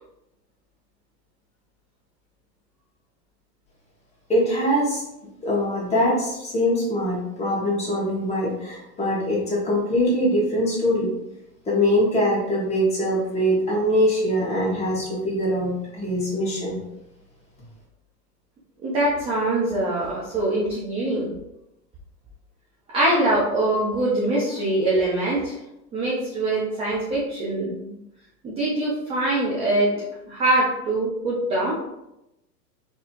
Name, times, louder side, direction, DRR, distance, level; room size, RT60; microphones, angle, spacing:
voice 1, 4.3-5.0 5.4-11.1 11.7-16.8, equal, 15° left, -5 dB, 1.4 m, -23 dB
voice 2, 18.8-21.3 22.9-25.5 25.9-27.9 28.4-31.8, right 1 dB, 15° right, -5 dB, 0.4 m, -23 dB
4.0 x 2.8 x 2.8 m, 0.86 s
hypercardioid pair, 115°, 50 cm